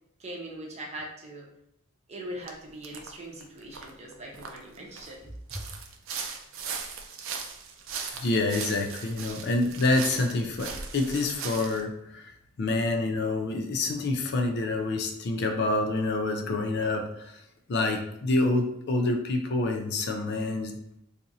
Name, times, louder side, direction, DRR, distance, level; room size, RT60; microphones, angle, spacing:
voice 1, 0.2-1.5 2.1-5.7, right 1 dB, 30° right, -1 dB, 0.7 m, -41 dB
sound 1, 2.5-2.6 2.8-3.1 3.4-5.1 5.5-11.8, right 6 dB, 65° right, 0.5 m, -38 dB
voice 2, 8.2-12.3 12.6-17.4 17.7-20.8, left 2 dB, 50° left, 4 dB, 0.4 m, -27 dB
2.7 x 2.5 x 4.0 m, 0.81 s
head